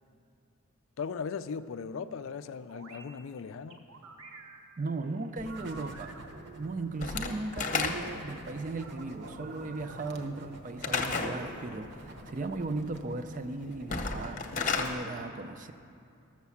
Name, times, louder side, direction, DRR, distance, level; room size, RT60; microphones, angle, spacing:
voice 1, 1.0-3.8, left 5 dB, 70° left, 13 dB, 0.4 m, -38 dB
sound 1, 2.7-3.0 3.7-6.9 7.4-7.9 8.8-10.1 11.2-12.6, right 3 dB, 85° right, 1.2 m, -50 dB
voice 2, 4.8-6.2 6.5-15.7, right 3 dB, 40° right, 10 dB, 0.5 m, -37 dB
sound 2, 5.4-15.1, right 1 dB, 55° right, 0.9 m, -50 dB
Slam / Wood, 7.0-8.3 10.8-11.4 13.8-14.9, left 4 dB, 35° left, 0.8 m, -31 dB
12.0 x 7.3 x 7.0 m, 2.6 s
head